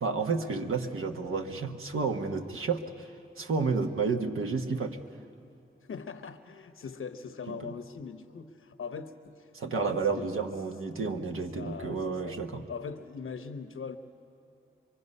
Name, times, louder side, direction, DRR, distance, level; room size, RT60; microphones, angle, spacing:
voice 1, 0.0-5.0 7.5-7.7 9.5-12.7, right 4 dB, 90° right, 4 dB, 1.2 m, -31 dB
voice 2, 5.8-10.3 11.3-12.4 12.7-14.0, left 5 dB, 85° left, 9 dB, 1.0 m, -41 dB
25.0 x 23.5 x 5.5 m, 2.7 s
cardioid pair, 45°, 21 cm